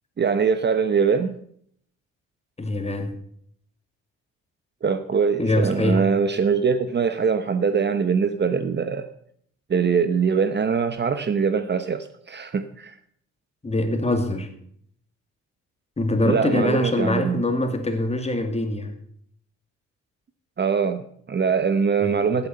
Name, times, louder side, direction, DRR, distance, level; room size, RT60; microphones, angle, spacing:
voice 1, 0.2-1.4 4.8-9.1 9.7-12.9 16.3-17.4 20.6-22.5, right 6 dB, 35° right, 10 dB, 1.0 m, -22 dB
voice 2, 2.6-3.2 5.4-6.1 13.6-14.5 16.0-19.0 22.0-22.3, left 1 dB, 20° left, 6 dB, 2.4 m, -24 dB
15.0 x 8.7 x 5.4 m, 0.63 s
cardioid pair, 90°, 30 cm